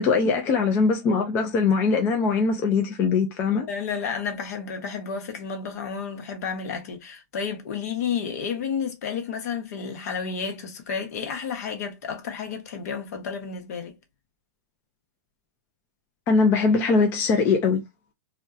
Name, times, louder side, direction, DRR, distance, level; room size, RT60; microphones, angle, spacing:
voice 1, 0.0-3.7 16.3-17.8, left 4 dB, 20° left, 0.3 m, -21 dB
voice 2, 3.5-13.9, left 6 dB, 60° left, 0.8 m, -31 dB
2.6 x 2.1 x 2.3 m
supercardioid pair, 160°, 10 cm